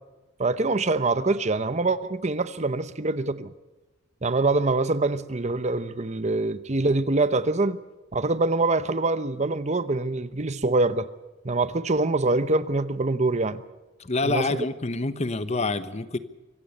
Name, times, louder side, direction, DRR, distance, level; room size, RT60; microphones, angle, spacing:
voice 1, 0.4-3.5 4.2-7.8 8.1-11.1 11.4-13.6 14.2-14.6, right 2 dB, 35° right, 0.9 m, -24 dB
voice 2, 14.0-16.2, left 3 dB, 35° left, 1.2 m, -27 dB
25.0 x 16.0 x 6.7 m
head